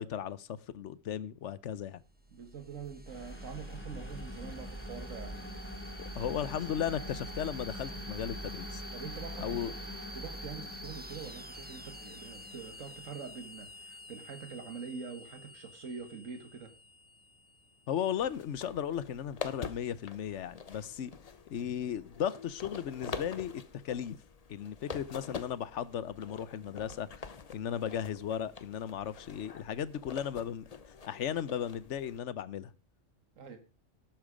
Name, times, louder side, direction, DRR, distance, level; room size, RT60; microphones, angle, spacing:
voice 1, 0.0-2.0 6.1-8.8 9.4-9.7 17.9-21.1 21.5-24.2 24.5-30.6 31.0-32.7, left 9 dB, 70° left, 1.0 m, -36 dB
sound 1, 2.0-18.4, equal, 10° right, 1.1 m, -48 dB
voice 2, 2.3-5.5 8.9-9.8 10.1-16.7 33.4-33.6, right 6 dB, 85° right, 1.8 m, -45 dB
sound 2, 3.0-14.7, equal, 10° left, 1.9 m, -45 dB
sound 3, 18.2-32.2, left 5 dB, 35° left, 0.8 m, -46 dB
12.0 x 9.1 x 5.0 m
omnidirectional pair, 1.3 m